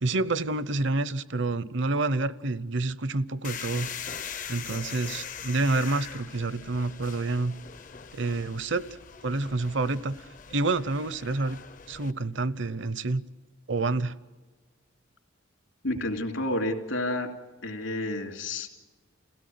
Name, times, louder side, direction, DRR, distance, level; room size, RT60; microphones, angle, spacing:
voice 1, 0.0-3.9 4.5-7.5 8.1-8.8 9.2-11.6 11.9-13.2 13.7-14.1, right 2 dB, 60° right, 16 dB, 0.8 m, -28 dB
sound 1, 3.4-12.1, left 7 dB, 40° left, 0.7 m, -41 dB
voice 2, 15.8-17.3 17.6-18.7, left 1 dB, 70° left, 3 dB, 3.1 m, -30 dB
28.5 x 16.5 x 9.4 m, 1.3 s
head